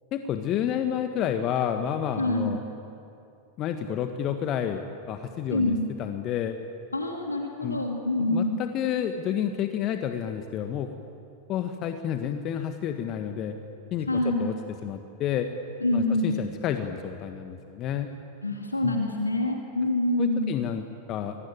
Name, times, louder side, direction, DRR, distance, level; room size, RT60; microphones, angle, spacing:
voice 1, 0.1-2.6 3.6-6.6 7.6-7.8 8.2-10.9 11.5-13.6 13.9-14.5 14.8-15.5 15.9-18.1 18.8-19.0 20.2-21.4, left 9 dB, 35° left, 7 dB, 1.6 m, -30 dB
voice 2, 2.2-2.6 5.5-5.9 6.9-8.6 14.1-14.5 15.8-16.5 18.4-20.5, left 1 dB, 80° left, 2 dB, 2.3 m, -26 dB
29.5 x 23.0 x 8.8 m, 2.7 s
figure-of-eight pair, 90°, 0 cm